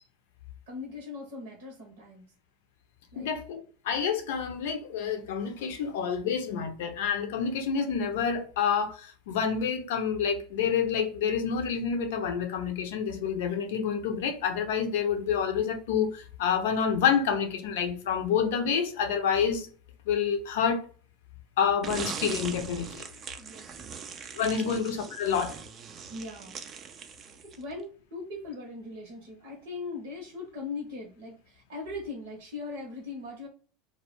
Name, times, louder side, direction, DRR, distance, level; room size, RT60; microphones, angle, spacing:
voice 1, 0.7-2.2 3.1-3.3 23.1-24.0 24.6-24.8 26.1-26.6 27.6-33.5, left 3 dB, 60° right, 0.8 m, -40 dB
voice 2, 3.2-19.7 20.1-20.8 21.6-23.1 24.3-25.6, left 7 dB, 65° left, 0.6 m, -28 dB
sound 1, 21.8-27.7, right 6 dB, 35° right, 0.4 m, -40 dB
2.2 x 2.0 x 3.0 m
hypercardioid pair, 80°, 0 cm